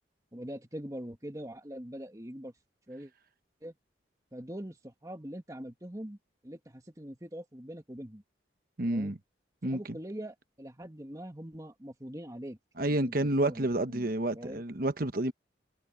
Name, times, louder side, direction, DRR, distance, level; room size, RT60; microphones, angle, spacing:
voice 1, 0.3-2.5 2.9-3.1 3.6-3.7 4.3-6.2 6.4-8.2 8.9-9.1 9.6-12.6 12.9-14.6, equal, 20° right, 1.9 m, -43 dB
voice 2, 8.8-9.2 9.6-10.0 12.8-15.3, right 1 dB, 50° right, 1.2 m, -29 dB
head